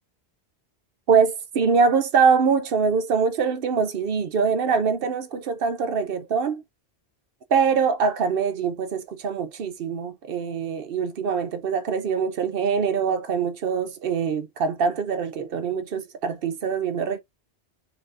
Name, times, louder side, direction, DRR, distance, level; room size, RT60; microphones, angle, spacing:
voice 1, 1.1-6.6 7.5-17.2, right 5 dB, 65° right, 0.8 m, -23 dB
3.7 x 2.7 x 3.3 m
omnidirectional pair, 1.1 m